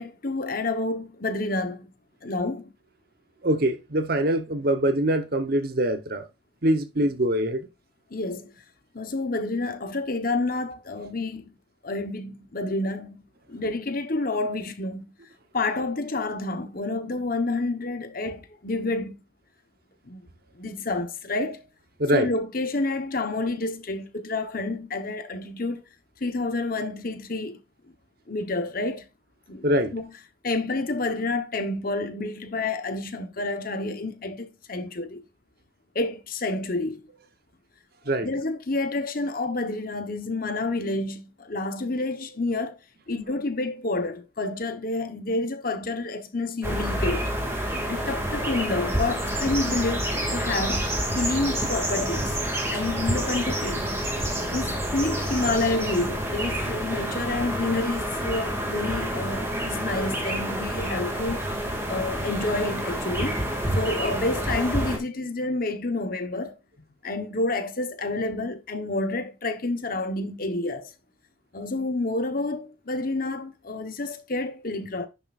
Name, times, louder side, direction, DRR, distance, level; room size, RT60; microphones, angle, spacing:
voice 1, 0.0-1.9 2.2-2.7 8.1-8.6 8.9-11.5 11.8-15.1 15.5-19.1 20.1-20.2 20.6-21.7 22.1-25.8 26.2-27.6 28.3-29.0 29.5-29.7 29.9-30.1 30.4-35.2 35.9-37.0 38.2-42.8 43.1-47.3 47.9-50.9 51.1-52.4 52.7-53.8 54.5-61.5 61.9-63.4 63.7-66.6 67.0-70.9 71.5-75.1, left 2 dB, 45° left, 1.2 m, -29 dB
voice 2, 3.4-6.2 6.6-7.7 22.0-22.3 29.6-30.0 38.1-38.3, right 1 dB, 50° right, 1.0 m, -23 dB
sound 1, 46.6-65.0, right 1 dB, 15° right, 2.4 m, -28 dB
10.5 x 6.9 x 2.5 m
head